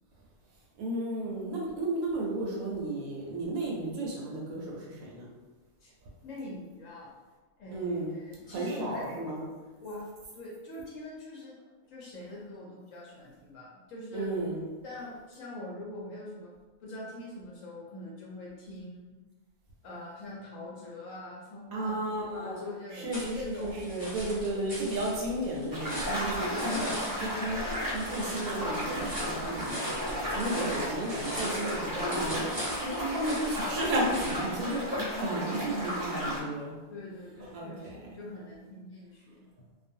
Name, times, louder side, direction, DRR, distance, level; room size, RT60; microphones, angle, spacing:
voice 1, 0.8-5.3 7.7-8.1 8.5-9.4 14.1-14.6 21.7-22.6 22.9-27.6 27.9-36.8 37.5-38.0, right 1 dB, 70° right, -3 dB, 1.0 m, -33 dB
voice 2, 6.2-7.1 7.6-9.0 9.8-10.0 10.3-11.5 11.9-14.3 14.8-16.5 16.8-19.2 19.8-23.8 24.1-24.7 35.6-36.3 36.9-39.4, left 1 dB, 65° left, -5 dB, 0.9 m, -44 dB
sound 1, 23.1-34.4, equal, 5° left, 1.0 m, -40 dB
sound 2, 25.7-36.4, equal, 20° right, 0.5 m, -34 dB
2.5 x 2.3 x 2.6 m, 1.3 s
omnidirectional pair, 1.6 m